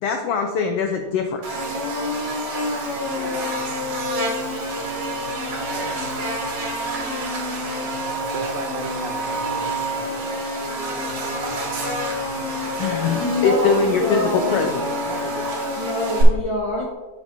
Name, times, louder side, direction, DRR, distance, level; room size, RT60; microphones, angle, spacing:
voice 1, 0.0-1.4 12.8-14.8, left 5 dB, 85° left, 4 dB, 1.3 m, -22 dB
Buzz, 1.4-16.2, right 3 dB, 60° right, 2.4 m, -29 dB
sound 1, 1.5-16.2, left 4 dB, 40° left, 2.1 m, -31 dB
voice 2, 5.6-6.0 7.5-13.3 14.2-15.5, right 6 dB, 80° right, 6 dB, 2.1 m, -38 dB
voice 3, 13.2-14.6 15.8-16.8, left 2 dB, 65° left, -2 dB, 1.2 m, -25 dB
12.0 x 5.1 x 2.6 m, 1.2 s
omnidirectional pair, 3.3 m